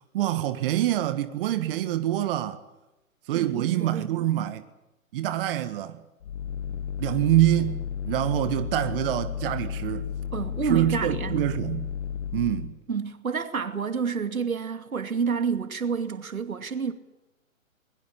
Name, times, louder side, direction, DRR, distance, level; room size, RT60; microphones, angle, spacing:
voice 1, 0.0-2.6 3.3-4.6 5.1-6.0 7.0-10.1 10.6-11.9 12.3-12.7, right 13 dB, 40° right, 1.7 m, -26 dB
voice 2, 3.3-4.5 10.3-11.4 12.9-16.9, right 6 dB, 90° right, 2.6 m, -29 dB
sound 1, 6.2-12.8, left 9 dB, 60° left, 1.3 m, -33 dB
23.0 x 22.0 x 8.4 m
hypercardioid pair, 135°, 41 cm